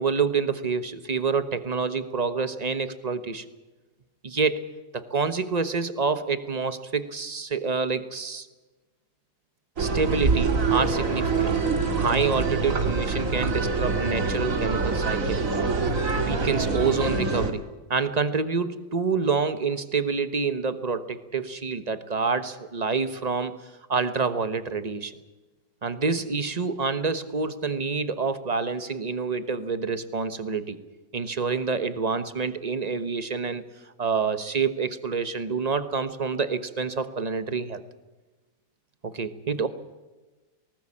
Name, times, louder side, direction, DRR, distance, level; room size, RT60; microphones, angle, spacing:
voice 1, 0.0-3.4 4.2-4.7 4.9-8.5 9.8-11.6 12.0-15.4 16.2-17.6 17.9-23.5 23.9-25.1 25.8-30.8 31.1-33.6 34.0-37.8 39.0-39.7, right 5 dB, 25° right, 11 dB, 1.0 m, -27 dB
sound 1, 9.8-17.5, right 4 dB, 45° right, 2.3 m, -25 dB
19.0 x 19.0 x 8.6 m, 1.2 s
omnidirectional pair, 2.0 m